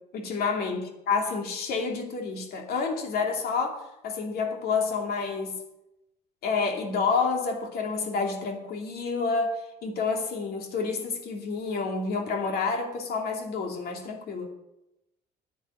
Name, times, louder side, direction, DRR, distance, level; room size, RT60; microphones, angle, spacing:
voice 1, 0.0-5.6 6.4-14.5, left 4 dB, 65° left, 2 dB, 2.6 m, -29 dB
10.0 x 9.1 x 7.3 m, 0.88 s
cardioid pair, 110°, 17 cm